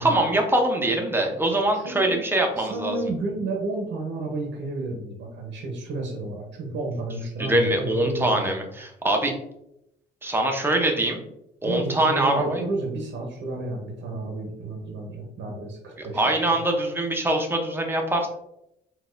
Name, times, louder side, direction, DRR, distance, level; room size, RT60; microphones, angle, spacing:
voice 1, 0.0-3.0 7.4-9.3 10.2-11.2 11.6-12.6 16.0-18.3, right 1 dB, 10° right, 2 dB, 0.7 m, -23 dB
voice 2, 1.7-2.2 2.6-8.6 11.6-16.2, right 2 dB, 65° right, 1 dB, 0.8 m, -31 dB
3.9 x 2.4 x 2.5 m, 0.81 s
cardioid pair, 90°, 20 cm